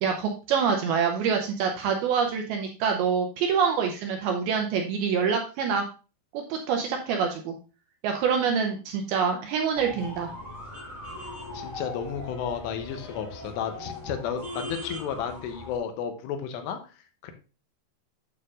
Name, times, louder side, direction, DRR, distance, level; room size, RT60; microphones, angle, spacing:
voice 1, 0.0-5.9 6.3-7.6 8.0-10.3, right 6 dB, 90° right, 3 dB, 2.2 m, -26 dB
sound 1, 9.7-15.8, left 2 dB, 5° left, 3.1 m, -39 dB
voice 2, 11.5-16.8 17.2-17.3, left 7 dB, 85° left, 7 dB, 2.9 m, -32 dB
8.8 x 6.6 x 2.5 m, 0.33 s
omnidirectional pair, 5.0 m